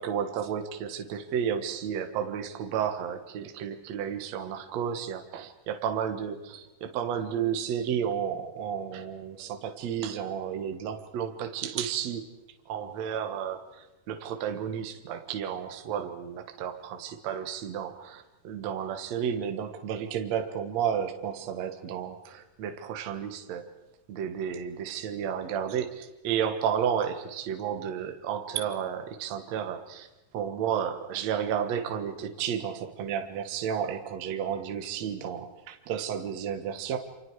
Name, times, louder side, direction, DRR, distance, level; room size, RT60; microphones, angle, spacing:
voice 1, 0.0-12.2 12.7-23.7 24.1-30.1 30.3-37.0, right 8 dB, 60° right, 6 dB, 2.5 m, -32 dB
29.0 x 27.5 x 4.8 m, 0.96 s
omnidirectional pair, 3.9 m